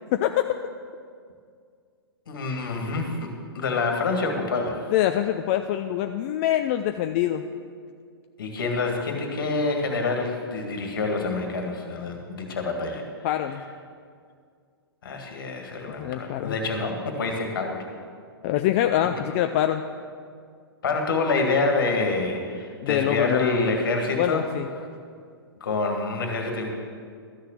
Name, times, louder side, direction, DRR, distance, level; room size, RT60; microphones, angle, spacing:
voice 1, 0.1-0.4 4.9-7.4 13.2-13.6 15.9-16.6 18.4-19.8 22.8-23.5 24.2-24.7, left 12 dB, 30° left, 7 dB, 0.4 m, -24 dB
voice 2, 2.3-4.9 8.4-13.0 15.0-17.8 20.8-24.4 24.8-24.9 25.6-26.7, left 3 dB, 55° left, 2 dB, 2.0 m, -27 dB
13.0 x 6.6 x 7.7 m, 2.1 s
figure-of-eight pair, 115°, 13 cm